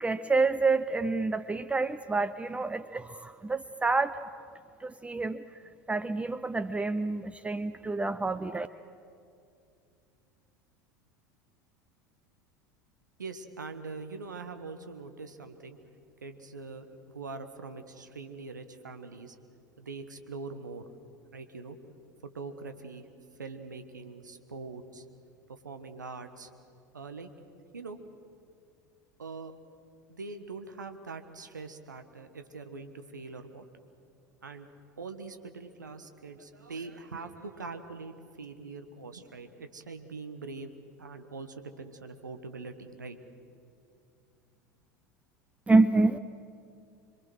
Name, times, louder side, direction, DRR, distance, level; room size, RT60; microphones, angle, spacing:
voice 1, 0.0-4.2 4.8-5.4 5.9-8.7 45.7-46.2, right 3 dB, 15° right, 13 dB, 0.6 m, -27 dB
voice 2, 13.2-15.8 16.2-19.3 19.8-20.9 21.3-21.8 22.2-23.0 23.4-25.0 25.5-26.5 26.9-27.3 27.7-28.0 29.2-29.5 30.1-33.7 34.4-34.7 35.0-40.7 41.0-43.2, right 4 dB, 85° right, 8 dB, 1.3 m, -43 dB
26.5 x 22.0 x 6.3 m, 2.5 s
figure-of-eight pair, 75°, 10 cm